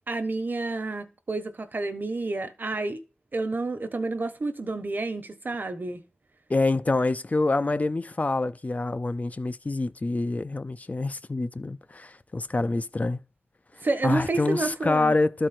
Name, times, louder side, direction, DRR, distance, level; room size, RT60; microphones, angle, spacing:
voice 1, 0.1-3.0 3.3-6.0 13.8-15.1, right 3 dB, 60° right, 1.3 m, -29 dB
voice 2, 6.5-13.2 14.0-15.5, left 2 dB, 40° left, 0.6 m, -26 dB
12.5 x 4.6 x 4.3 m
wide cardioid pair, 55°, 4 cm